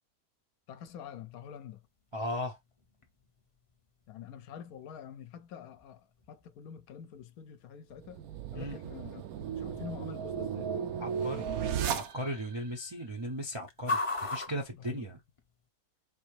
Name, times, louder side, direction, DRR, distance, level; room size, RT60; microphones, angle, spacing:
voice 1, 0.7-1.8 4.1-8.2 8.5-10.7 14.8-15.1, left 8 dB, 75° left, 1.0 m, -46 dB
sound 1, 0.9-15.7, left 2 dB, 30° left, 0.6 m, -44 dB
voice 2, 2.1-2.6 8.5-8.8 11.0-11.4 11.9-14.0 14.3-15.2, equal, 35° right, 0.4 m, -36 dB
sound 2, 8.0-12.6, right 8 dB, 75° right, 1.1 m, -35 dB
4.1 x 2.7 x 3.2 m
omnidirectional pair, 1.6 m